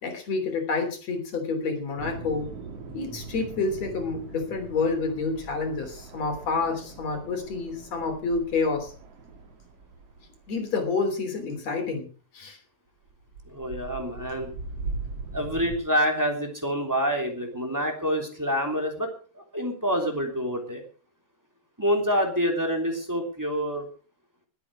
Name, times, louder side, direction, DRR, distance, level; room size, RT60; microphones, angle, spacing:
voice 1, 0.0-2.5 2.9-8.9 10.5-12.1 12.3-12.6, left 4 dB, 45° left, 5 dB, 4.2 m, -28 dB
sound 1, 2.0-10.8 13.0-15.8, right 3 dB, 45° right, 2.6 m, -40 dB
voice 2, 13.5-14.5 15.3-19.1 19.3-20.8 21.8-23.9, equal, 5° right, 2 dB, 2.6 m, -27 dB
21.0 x 8.8 x 4.9 m, 0.38 s
omnidirectional pair, 4.3 m